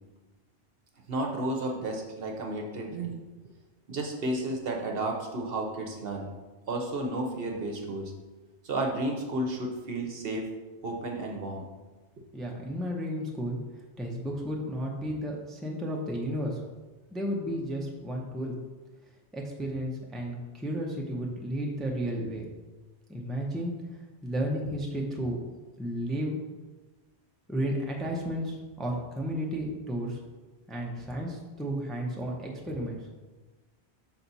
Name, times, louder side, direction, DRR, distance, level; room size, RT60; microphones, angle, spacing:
voice 1, 1.1-3.2 3.9-6.3 6.7-8.1 8.6-10.5 10.8-11.6, right 1 dB, 60° right, 2 dB, 1.0 m, -32 dB
voice 2, 12.3-13.6 14.0-16.6 17.1-18.6 19.3-22.5 23.1-23.7 24.2-25.4 25.8-26.4 27.5-30.2 30.7-33.0, equal, ahead, -1 dB, 0.6 m, -33 dB
5.8 x 4.2 x 4.1 m, 1.2 s
omnidirectional pair, 1.2 m